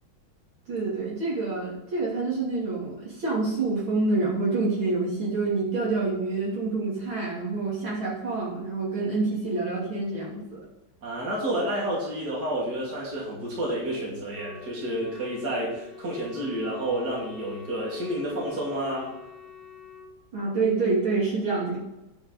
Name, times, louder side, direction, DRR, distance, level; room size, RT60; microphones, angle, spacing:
voice 1, 0.7-10.6 20.3-21.8, right 3 dB, 65° right, -6 dB, 3.7 m, -27 dB
voice 2, 11.0-19.1, right 1 dB, 45° right, -5 dB, 3.4 m, -30 dB
Wind instrument woodwind instrument, 14.3-20.1, left 7 dB, 15° right, 1.5 m, -46 dB
10.0 x 5.0 x 6.6 m, 0.94 s
omnidirectional pair, 2.4 m